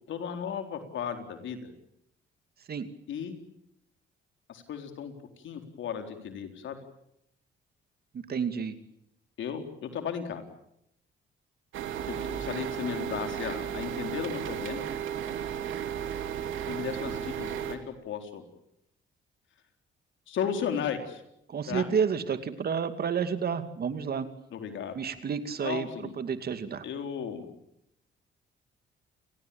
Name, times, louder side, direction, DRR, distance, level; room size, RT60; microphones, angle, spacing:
voice 1, 0.1-1.6 3.1-3.4 4.5-6.8 9.4-10.4 12.1-14.9 16.7-18.4 20.3-21.2 21.7-21.9 24.5-25.0 25.6-26.2 26.8-27.5, left 7 dB, 75° left, 6 dB, 4.2 m, -35 dB
voice 2, 8.1-8.8 21.5-24.3 24.9-25.9 26.2-26.8, right 6 dB, 50° right, 10 dB, 2.5 m, -30 dB
sound 1, 11.7-17.8, right 9 dB, 85° right, 2.8 m, -34 dB
29.5 x 18.5 x 8.8 m, 0.79 s
cardioid pair, 90°, 20 cm